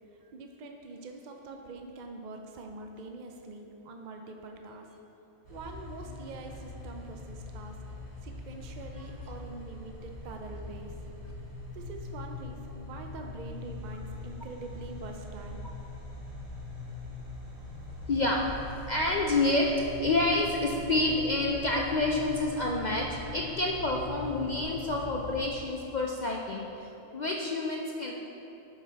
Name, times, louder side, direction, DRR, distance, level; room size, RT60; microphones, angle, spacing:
voice 1, 0.1-4.9 5.5-7.8 8.2-11.0 11.7-15.7, right 3 dB, 55° right, 3 dB, 0.5 m, -44 dB
sound 1, 5.4-25.4, left 2 dB, 75° right, 2.2 m, -42 dB
voice 2, 18.1-18.4 18.9-19.7 20.0-28.1, left 2 dB, 55° left, -1 dB, 0.5 m, -28 dB
12.0 x 5.5 x 4.1 m, 3.0 s
omnidirectional pair, 1.5 m